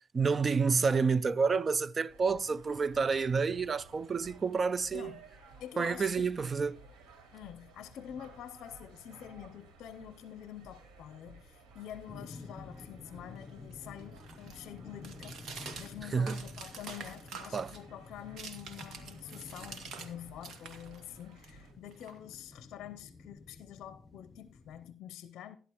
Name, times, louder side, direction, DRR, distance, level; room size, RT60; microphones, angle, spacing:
voice 1, 0.1-5.2 5.8-6.8 16.1-16.4 17.5-17.7, right 5 dB, 35° right, 0.4 m, -29 dB
sound 1, 2.1-21.7, right 3 dB, 85° right, 3.1 m, -56 dB
voice 2, 5.6-6.3 7.3-15.4 15.8-25.6, left 10 dB, 70° left, 0.6 m, -47 dB
sound 2, 12.1-24.9, left 3 dB, 30° left, 0.8 m, -51 dB
sound 3, 12.7-20.1 20.4-22.6, right 5 dB, 65° right, 2.0 m, -48 dB
14.0 x 11.0 x 3.0 m
cardioid pair, 100°, 0 cm